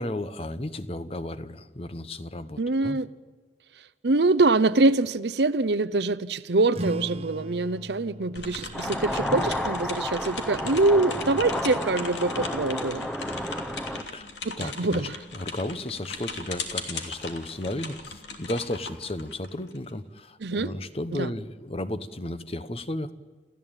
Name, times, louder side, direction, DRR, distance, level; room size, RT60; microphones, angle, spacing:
voice 1, 0.0-3.0 14.1-14.3 14.6-23.1, left 1 dB, 35° left, 0.9 m, -34 dB
voice 2, 2.6-3.1 4.0-13.1 14.4-15.2 20.4-20.7 21.1-21.3, right 2 dB, 70° right, 0.8 m, -24 dB
sound 1, 6.7-11.8, right 1 dB, 35° right, 1.0 m, -40 dB
sound 2, 8.4-19.9, left 4 dB, 80° left, 2.9 m, -38 dB
sound 3, 8.7-14.0, equal, 5° left, 1.0 m, -31 dB
29.0 x 14.5 x 9.0 m
head